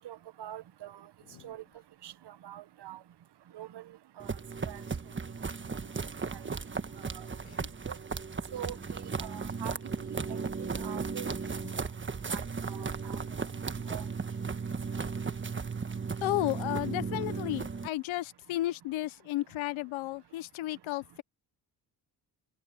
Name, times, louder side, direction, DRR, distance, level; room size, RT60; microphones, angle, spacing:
voice 1, 0.0-1.0 1.4-1.6 2.0-3.0 3.5-3.8 4.2-4.4 4.7-4.8 6.3-6.5 7.0-7.2 7.9-8.0 8.5-11.3 12.3-13.2 13.9-14.0 15.0-15.1, right 11 dB, 60° right, 1.2 m, -44 dB
sound 1, 4.2-17.9, right 5 dB, 25° right, 1.4 m, -36 dB
voice 2, 16.2-21.0, left 17 dB, 90° left, 1.0 m, -33 dB
cardioid pair, 75°, 46 cm